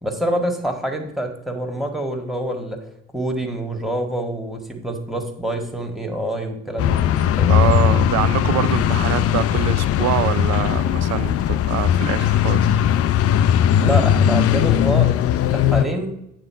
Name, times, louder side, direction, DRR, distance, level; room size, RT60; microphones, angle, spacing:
voice 1, 0.0-2.8 3.1-7.7 13.8-16.2, right 1 dB, ahead, 1.7 m, -26 dB
sound 1, 6.8-15.9, left 10 dB, 40° left, 0.5 m, -18 dB
voice 2, 7.5-12.8, right 14 dB, 45° right, 0.4 m, -25 dB
8.9 x 3.8 x 5.7 m
figure-of-eight pair, 50°, 37 cm